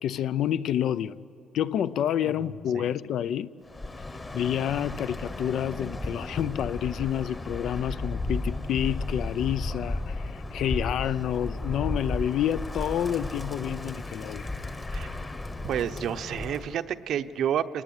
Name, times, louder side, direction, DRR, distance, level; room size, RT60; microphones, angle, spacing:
voice 1, 0.0-1.2 1.5-3.5 4.3-14.5, left 10 dB, 60° left, 0.6 m, -29 dB
voice 2, 2.2-2.9 14.9-15.1 15.6-17.8, right 9 dB, 60° right, 0.9 m, -30 dB
Bird, 3.7-16.8, left 2 dB, 15° left, 1.1 m, -34 dB
29.0 x 20.0 x 10.0 m
cardioid pair, 155°, 0 cm